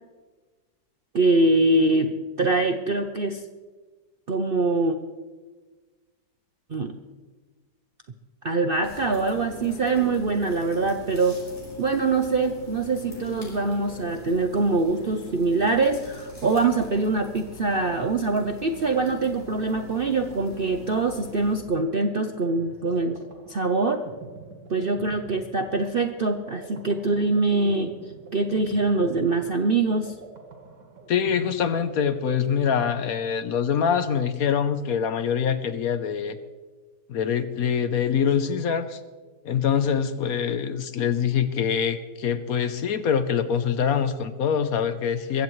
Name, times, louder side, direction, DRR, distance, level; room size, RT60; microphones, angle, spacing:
voice 1, 1.1-3.4 4.3-5.0 6.7-6.9 8.4-11.4 11.8-23.2 23.5-24.1 24.7-27.9 28.3-30.1, right 3 dB, 55° right, 6 dB, 0.6 m, -24 dB
sound 1, 8.8-21.6, left 2 dB, 30° left, 6.2 m, -42 dB
sound 2, 21.7-32.5, right 3 dB, 85° right, 2.0 m, -46 dB
voice 2, 31.1-36.4 37.1-39.0 39.4-45.4, left 7 dB, 65° left, 11 dB, 1.1 m, -24 dB
22.0 x 15.0 x 3.2 m, 1.3 s
omnidirectional pair, 1.8 m